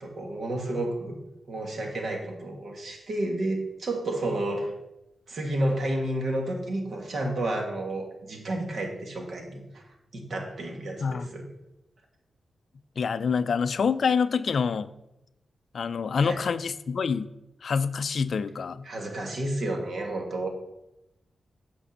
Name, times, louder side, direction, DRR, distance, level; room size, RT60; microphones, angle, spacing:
voice 1, 0.0-1.2 1.5-4.7 5.3-9.8 10.1-11.4 16.2-16.4 18.8-20.5, right 1 dB, 55° right, 1 dB, 1.7 m, -31 dB
voice 2, 13.0-14.9 15.7-17.3 17.6-18.9, left 5 dB, 55° left, 13 dB, 0.4 m, -26 dB
8.5 x 5.2 x 6.5 m, 0.92 s
wide cardioid pair, 160°, 0 cm